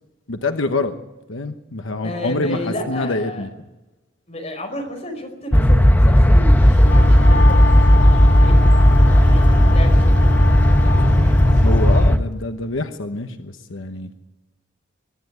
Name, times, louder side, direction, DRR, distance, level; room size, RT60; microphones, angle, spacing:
voice 1, 0.3-0.9 1.3-3.5 11.6-14.1, left 2 dB, 85° left, 7 dB, 1.1 m, -25 dB
voice 2, 2.0-3.5 4.3-7.6 8.2-8.8 9.1-10.5 10.8-11.7, left 1 dB, 35° left, 3 dB, 4.9 m, -32 dB
sound 1, 5.5-12.2, equal, 10° left, 1.0 m, -13 dB
Wind instrument woodwind instrument, 6.6-12.1, left 4 dB, 70° left, 0.7 m, -28 dB
23.0 x 12.0 x 9.5 m, 1.1 s
head